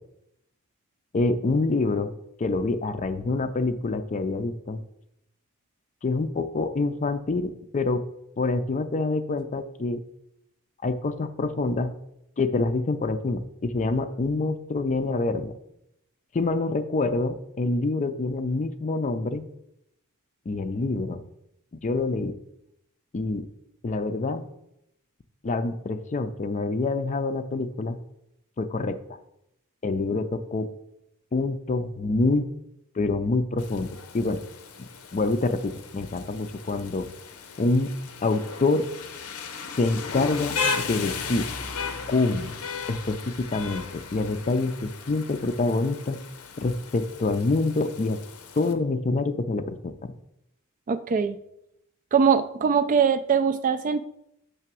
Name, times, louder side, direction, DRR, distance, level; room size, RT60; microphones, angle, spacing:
voice 1, 1.1-2.1 2.4-4.8 6.0-8.1 8.4-10.0 10.8-11.9 12.4-15.5 16.3-19.5 20.5-21.2 21.8-22.4 23.1-23.5 23.8-24.4 25.4-28.0 28.6-29.0 29.8-30.7 31.3-32.5 33.0-34.4 34.8-37.1 37.6-37.9 38.2-38.9 39.8-41.5 42.1-42.5 42.9-46.2 46.6-48.2 48.6-50.1, left 3 dB, 35° left, 10 dB, 0.4 m, -26 dB
Rain, 33.6-48.7, left 5 dB, 85° left, 0.7 m, -36 dB
voice 2, 50.9-51.4 52.1-54.0, right 6 dB, 35° right, 12 dB, 0.3 m, -22 dB
6.7 x 3.3 x 6.1 m, 0.80 s
head